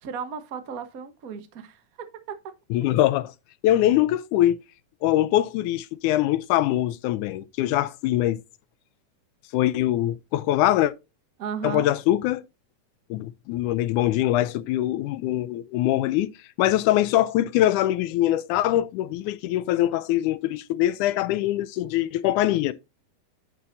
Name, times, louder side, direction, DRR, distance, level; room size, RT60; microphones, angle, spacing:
voice 1, 0.0-1.8 2.3-2.5 11.4-11.9, right 7 dB, 65° right, 0.8 m, -35 dB
voice 2, 2.7-3.3 3.6-4.6 5.0-8.4 9.5-10.9 11.6-12.4 13.1-16.3 16.6-22.7, left 14 dB, 80° left, 2.0 m, -23 dB
11.0 x 6.4 x 2.7 m
omnidirectional pair, 3.7 m